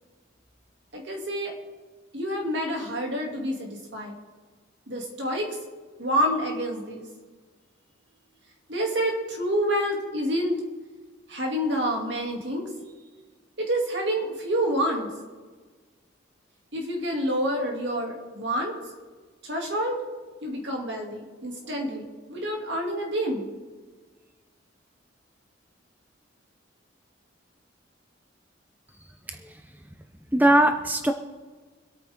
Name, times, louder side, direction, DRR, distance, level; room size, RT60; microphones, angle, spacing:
voice 1, 0.9-1.5 2.1-4.2 4.9-5.5 6.0-7.0 8.7-10.6 11.3-12.7 13.6-15.1 16.7-18.7 19.4-20.0 20.4-23.5, equal, 65° right, 0 dB, 2.6 m, -28 dB
voice 2, 29.3-29.6 30.3-31.1, right 1 dB, 10° right, 6 dB, 0.6 m, -21 dB
25.0 x 8.8 x 3.6 m, 1.4 s
head